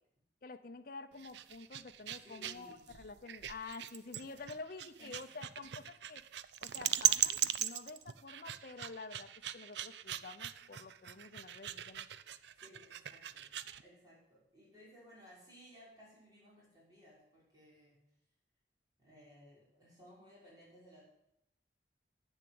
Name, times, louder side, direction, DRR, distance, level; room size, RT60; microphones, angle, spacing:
voice 1, 0.4-6.2 6.6-12.1, left 3 dB, 55° left, 8 dB, 0.7 m, -49 dB
sound 1, 1.1-13.8, right 11 dB, 80° right, 0.5 m, -38 dB
voice 2, 2.2-2.9 4.4-4.5 5.0-5.3 12.6-13.6 13.8-18.0 19.0-21.0, equal, 20° right, -7 dB, 5.8 m, -59 dB
10.5 x 8.0 x 7.7 m, 0.78 s
head